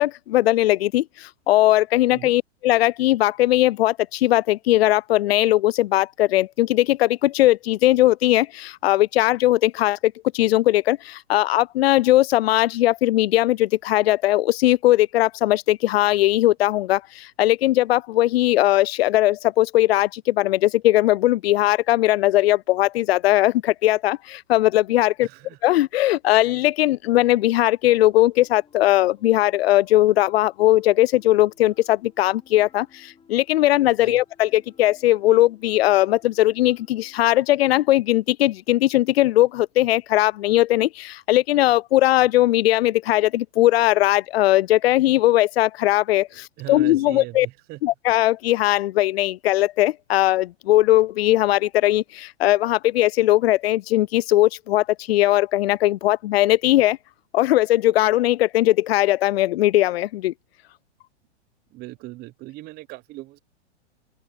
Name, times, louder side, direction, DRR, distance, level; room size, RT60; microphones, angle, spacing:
voice 1, 0.0-25.3 25.6-47.5 47.8-57.0 57.3-60.3, left 15 dB, 60° left, 0.5 m, -19 dB
voice 2, 25.2-25.6 34.0-34.2 46.3-47.8 61.7-63.4, right 19 dB, 25° right, 0.8 m, -39 dB
sound 1, 28.0-37.5, left 6 dB, 15° left, 4.9 m, -58 dB
open air
hypercardioid pair, 115°, 35 cm